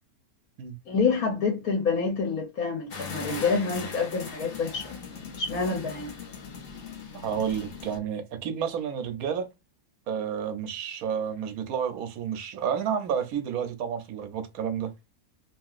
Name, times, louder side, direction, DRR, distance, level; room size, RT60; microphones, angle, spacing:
voice 1, 0.9-6.1, left 4 dB, 70° left, 1.3 m, -27 dB
sound 1, 2.9-8.0, left 5 dB, 50° left, 0.8 m, -40 dB
voice 2, 7.2-9.5 10.1-14.9, right 7 dB, 70° right, 1.1 m, -30 dB
3.0 x 2.7 x 2.4 m
omnidirectional pair, 1.6 m